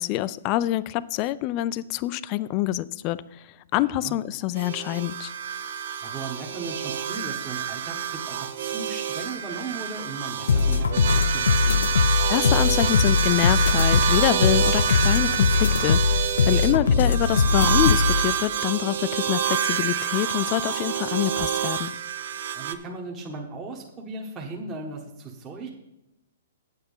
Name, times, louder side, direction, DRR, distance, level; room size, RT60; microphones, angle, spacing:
voice 1, 0.0-3.4 3.7-5.3 12.3-21.9, left 15 dB, 30° left, 18 dB, 0.3 m, -26 dB
voice 2, 3.7-4.2 6.0-11.8 16.5-16.9 22.5-25.7, right 3 dB, 15° right, -1 dB, 1.1 m, -37 dB
sound 1, 4.5-22.7, right 9 dB, 60° right, 0.8 m, -27 dB
sound 2, 10.5-18.2, left 5 dB, 85° left, 0.6 m, -21 dB
8.2 x 8.0 x 5.5 m, 0.92 s
hypercardioid pair, 155°, 0 cm